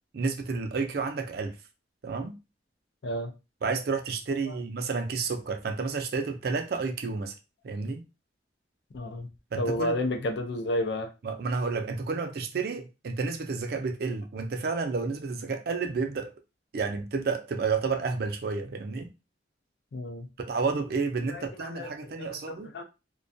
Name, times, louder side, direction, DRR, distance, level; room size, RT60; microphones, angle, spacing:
voice 1, 0.1-1.6 2.0-2.4 3.6-7.3 7.6-8.0 9.5-10.0 11.2-16.3 16.7-19.1 20.4-22.7, right 4 dB, 55° right, 0.4 m, -30 dB
voice 2, 8.9-9.3 9.6-11.1 19.9-20.3 21.3-22.8, left 1 dB, 65° left, 0.4 m, -31 dB
2.2 x 2.2 x 2.5 m
head